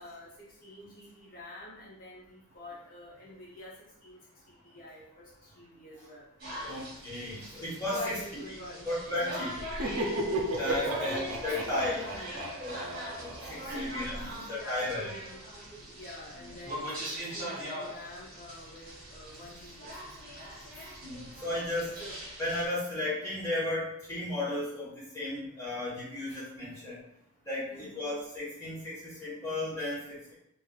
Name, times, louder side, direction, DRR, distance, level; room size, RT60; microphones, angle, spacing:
voice 1, 0.0-6.3 7.5-7.6 7.9-8.9 10.9-11.3 11.6-12.7 13.7-20.3 21.5-21.6 22.0-22.1 27.7-28.1, left 1 dB, 40° left, -6 dB, 0.5 m, -47 dB
sound 1, 6.4-22.6, equal, 40° right, 1.2 m, -42 dB
voice 2, 6.6-8.2 8.8-9.6 10.6-12.0 12.6-12.8 13.2-14.1 14.5-15.1 16.4-16.5 21.0-21.9 22.4-26.9 27.4-30.0, left 1 dB, 15° left, -9 dB, 1.1 m, -34 dB
Laughter, 9.5-14.2, right 1 dB, 70° right, 0.5 m, -34 dB
3.2 x 2.5 x 2.3 m, 0.78 s
head